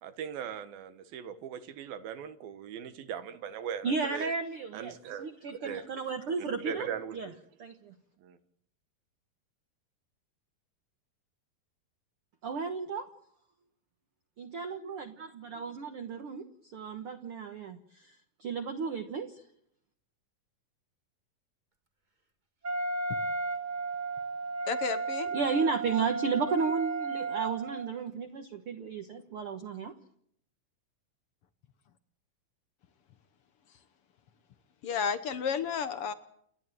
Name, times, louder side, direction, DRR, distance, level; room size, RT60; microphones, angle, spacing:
voice 1, 0.0-4.3 4.7-5.3 5.6-5.8 6.6-7.3 8.2-8.4, right 8 dB, 85° right, 10 dB, 3.2 m, -39 dB
voice 2, 3.8-4.9 5.2-6.9 7.1-7.3 7.6-7.9 12.4-13.1 14.4-16.4 16.7-18.1 18.4-19.3 25.3-29.9, right 5 dB, 55° right, 6 dB, 1.7 m, -33 dB
Wind instrument woodwind instrument, 22.6-27.9, right 3 dB, 20° right, 1.1 m, -34 dB
voice 3, 24.7-25.3 34.8-36.1, left 7 dB, 70° left, 12 dB, 1.4 m, -32 dB
29.5 x 11.5 x 9.2 m, 0.68 s
omnidirectional pair, 4.1 m